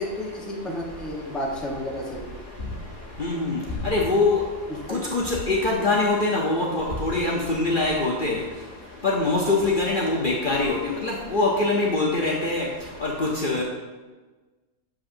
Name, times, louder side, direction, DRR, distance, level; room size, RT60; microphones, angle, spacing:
voice 1, 0.0-2.4 4.7-5.0, left 1 dB, ahead, -2 dB, 0.8 m, -32 dB
voice 2, 3.2-3.6 3.8-4.4 4.9-8.4 9.0-12.7 13.0-13.6, left 2 dB, 45° left, -3 dB, 0.8 m, -23 dB
7.6 x 7.1 x 2.6 m, 1.3 s
omnidirectional pair, 1.5 m